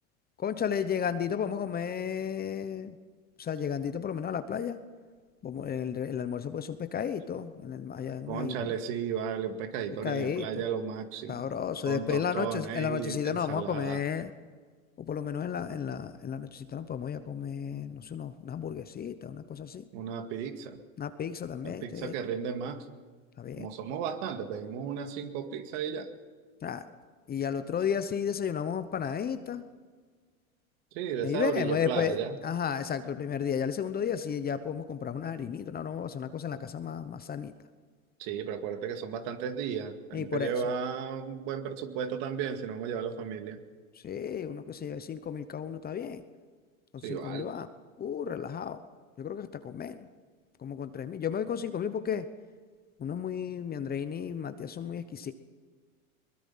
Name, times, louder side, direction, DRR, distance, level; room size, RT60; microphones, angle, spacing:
voice 1, 0.4-3.0 3.4-4.8 5.4-8.7 10.0-10.5 11.3-14.3 15.0-19.8 21.0-22.1 23.4-23.7 26.6-26.8 27.3-29.6 31.2-37.5 40.1-40.5 44.0-46.2 46.9-47.7 48.0-48.8 49.2-50.1 50.6-52.2 53.0-55.3, left 8 dB, 20° left, 11 dB, 1.0 m, -33 dB
voice 2, 8.3-11.4 11.9-14.0 19.9-20.8 21.6-22.9 23.5-26.1 30.9-32.4 38.2-43.6 47.0-47.5, right 7 dB, 55° right, 8 dB, 2.2 m, -34 dB
22.5 x 20.5 x 5.7 m, 1.5 s
hypercardioid pair, 115°, 42 cm